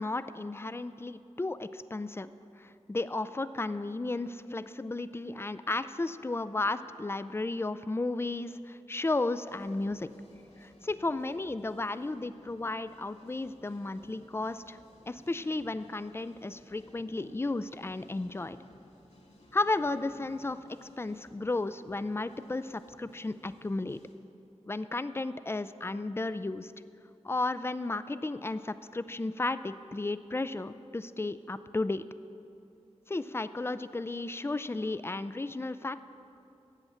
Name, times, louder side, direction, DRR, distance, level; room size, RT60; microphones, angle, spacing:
voice 1, 0.0-2.3 2.6-10.1 10.6-14.8 15.1-18.6 19.5-24.0 24.7-26.7 27.2-32.1 33.1-36.0, left 2 dB, 20° left, 13 dB, 0.3 m, -34 dB
sound 1, 9.5-24.1, left 1 dB, 60° left, 1.8 m, -59 dB
7.9 x 7.9 x 7.2 m, 2.8 s
wide cardioid pair, 50°, 12 cm